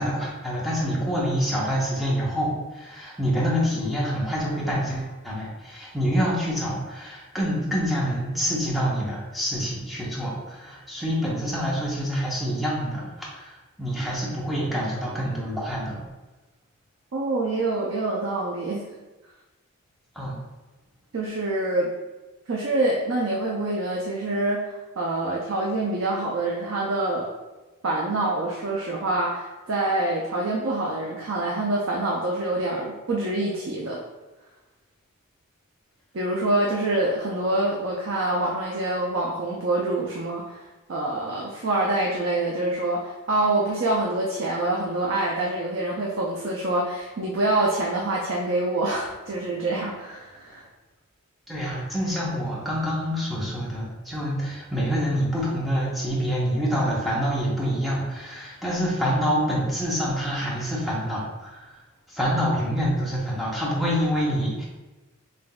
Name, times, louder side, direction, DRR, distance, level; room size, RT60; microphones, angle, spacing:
voice 1, 0.0-13.5 13.8-16.0 20.2-20.4 51.5-61.7 62.1-64.7, equal, ahead, -6 dB, 0.8 m, -26 dB
voice 2, 17.1-18.8 21.1-21.9 22.5-27.3 27.8-34.0 36.1-40.6 40.9-50.7, right 2 dB, 60° right, -2 dB, 0.5 m, -26 dB
5.5 x 2.5 x 2.3 m, 1.1 s
head